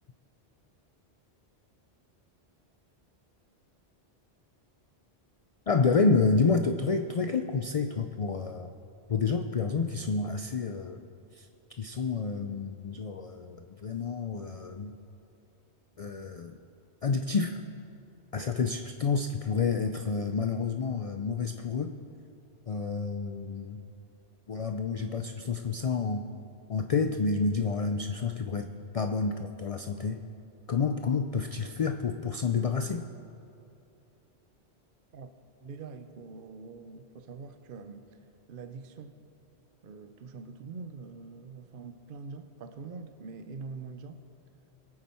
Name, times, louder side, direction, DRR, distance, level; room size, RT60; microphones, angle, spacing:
voice 1, 5.7-8.7 9.1-11.0 11.3-11.5 11.8-14.9 16.0-16.6 17.0-17.6 18.3-22.0 22.7-23.8 24.5-26.3 26.7-28.7 28.9-30.2 30.7-33.1, left 4 dB, 50° left, 0.4 m, -29 dB
voice 2, 35.6-38.2 38.5-39.2 39.8-44.2, right 4 dB, 55° right, 0.8 m, -44 dB
22.0 x 8.6 x 4.4 m
omnidirectional pair, 1.1 m